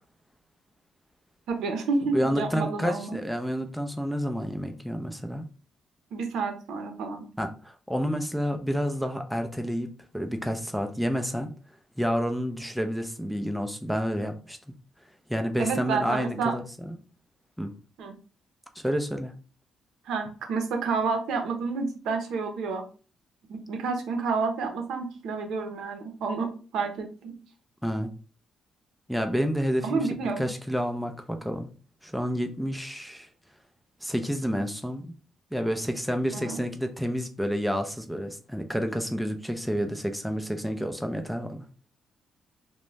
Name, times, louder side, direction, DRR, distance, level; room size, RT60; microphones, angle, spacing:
voice 1, 1.5-3.2 6.1-7.2 15.6-16.5 18.0-18.1 20.1-22.8 23.5-27.3 29.8-30.4 36.3-36.6, right 4 dB, 80° right, 4 dB, 0.6 m, -29 dB
voice 2, 2.1-5.4 7.4-9.9 10.1-11.5 12.0-14.6 15.3-17.0 17.6-17.7 18.8-19.3 27.8-28.1 29.1-31.7 32.0-33.3 34.0-35.1 35.5-41.7, equal, ahead, 5 dB, 0.4 m, -29 dB
2.5 x 2.1 x 3.1 m, 0.37 s
cardioid pair, 90°, 0 cm